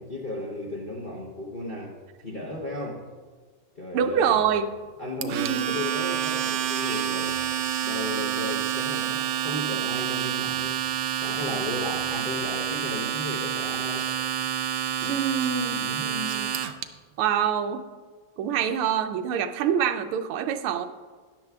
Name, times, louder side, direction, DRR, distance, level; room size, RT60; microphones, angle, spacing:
voice 1, 0.0-3.0 3.7-4.4 5.0-7.5 7.8-10.8 11.2-14.1 15.0-15.2 15.7-16.1, left 2 dB, 55° left, -2 dB, 0.5 m, -35 dB
voice 2, 3.9-4.7 5.2-5.7 15.0-16.5 17.2-17.8 18.4-20.9, right 8 dB, 90° right, 9 dB, 1.5 m, -26 dB
Domestic sounds home sounds, 5.2-16.8, right 10 dB, 75° right, 1.0 m, -28 dB
13.5 x 10.5 x 2.3 m, 1.5 s
omnidirectional pair, 2.3 m